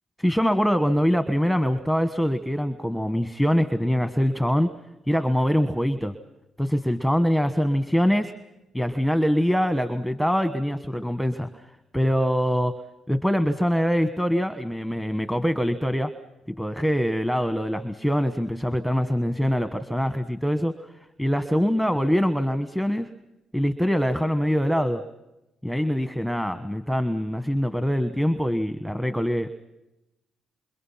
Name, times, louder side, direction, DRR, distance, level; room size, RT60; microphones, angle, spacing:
voice 1, 0.2-4.7 5.1-6.1 6.6-8.3 8.7-11.6 11.9-12.7 13.1-16.1 16.5-20.9 21.2-23.1 23.5-25.0 25.6-29.6, equal, ahead, 10 dB, 1.4 m, -24 dB
28.5 x 27.5 x 5.9 m, 0.91 s
cardioid pair, 90°, 0 cm